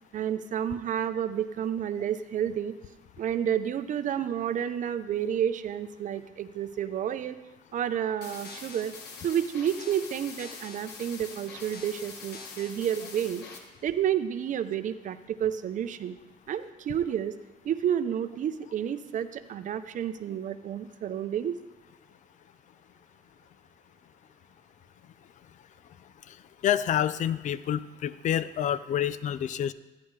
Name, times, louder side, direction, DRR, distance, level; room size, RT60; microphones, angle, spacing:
voice 1, 0.1-2.7 3.2-7.4 7.7-8.9 9.2-13.4 13.8-16.2 16.5-17.4 17.6-21.5, right 9 dB, 50° right, 11 dB, 0.6 m, -30 dB
sound 1, 8.2-13.6, left 4 dB, 75° left, 1.3 m, -44 dB
voice 2, 26.6-29.7, left 10 dB, 45° left, 16 dB, 0.4 m, -28 dB
13.5 x 9.4 x 3.2 m, 1.1 s
cardioid pair, 110°, 17 cm